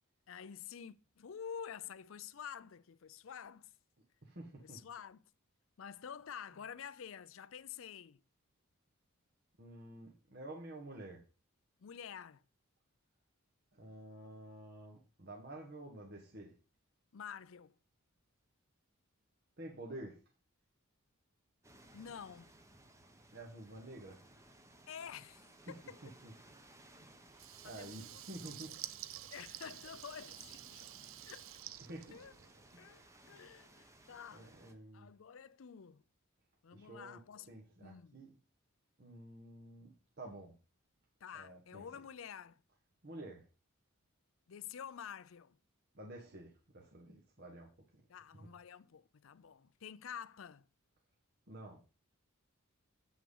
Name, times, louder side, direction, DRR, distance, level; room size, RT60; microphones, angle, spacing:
voice 1, 0.3-3.7 4.6-5.2 5.8-8.2 11.8-12.4 17.1-17.7 21.9-22.5 24.9-26.0 27.6-28.6 29.3-30.9 31.2-31.5 32.1-32.3 32.8-34.5 34.9-36.0 36.6-37.5 37.8-38.2 41.2-42.6 44.5-45.6 48.1-50.7, left 8 dB, 65° left, 0.5 m, -49 dB
voice 2, 4.2-4.8 9.6-11.2 13.7-16.5 19.6-20.2 23.3-24.2 25.7-26.3 26.6-27.0 27.6-28.8 31.8-32.2 32.8-33.3 34.3-35.1 36.7-37.2 37.5-38.4 39.0-40.6 41.3-41.8 43.0-43.4 45.9-47.7 48.4-48.5 51.5-51.8, right 1 dB, 50° right, 1.4 m, -50 dB
sound 1, 21.6-34.7, right 1 dB, 15° right, 1.0 m, -61 dB
Water tap faucet / Liquid, 27.3-32.8, right 13 dB, 70° right, 0.5 m, -50 dB
8.2 x 6.0 x 5.4 m
head